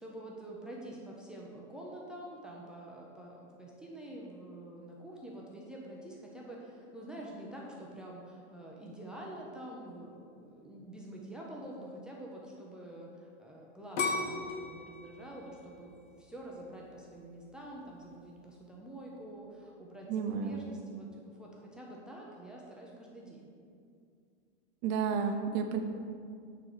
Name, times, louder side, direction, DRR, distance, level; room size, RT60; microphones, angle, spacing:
voice 1, 0.0-23.5, right 1 dB, ahead, -3 dB, 0.4 m, -47 dB
sound 1, 14.0-16.9 17.4-17.9, left 3 dB, 75° left, 1.4 m, -36 dB
voice 2, 20.1-20.6 24.8-25.8, right 6 dB, 30° right, 5 dB, 0.7 m, -31 dB
9.7 x 3.8 x 6.4 m, 2.3 s
supercardioid pair, 155°, 36 cm